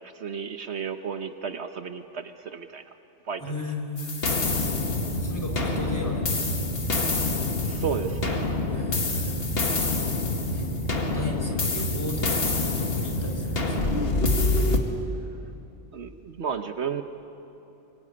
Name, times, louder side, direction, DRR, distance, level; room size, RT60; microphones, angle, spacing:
voice 1, 0.1-2.8 3.3-3.4 7.6-8.5 15.9-17.0, right 7 dB, 70° right, 8 dB, 1.3 m, -33 dB
voice 2, 3.4-4.1 4.5-6.6 8.7-9.6 10.5-10.7 11.1-13.9, left 1 dB, 15° left, 2 dB, 3.6 m, -36 dB
sound 1, 4.0-14.8, left 2 dB, 55° left, 2.1 m, -26 dB
24.0 x 21.5 x 9.8 m, 3.0 s
omnidirectional pair, 1.2 m